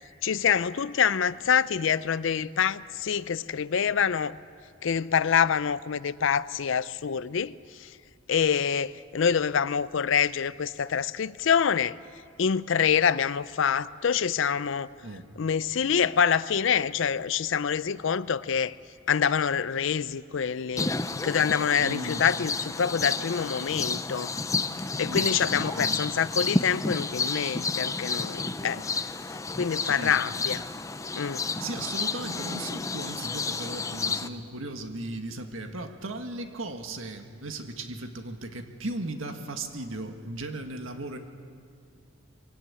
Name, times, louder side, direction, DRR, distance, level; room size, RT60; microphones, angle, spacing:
voice 1, 0.2-4.3 4.8-7.9 8.3-12.0 12.4-14.9 15.4-18.8 19.1-20.9 21.2-24.3 25.0-28.8 29.3-30.6 31.2-31.4, left 7 dB, 65° left, 0.5 m, -26 dB
sound 1, 20.8-34.3, left 3 dB, 15° left, 0.5 m, -31 dB
voice 2, 21.8-22.2 25.1-26.0 28.7-28.8 30.0-30.2 31.6-41.2, right 2 dB, 75° right, 1.9 m, -37 dB
22.5 x 17.0 x 8.5 m
head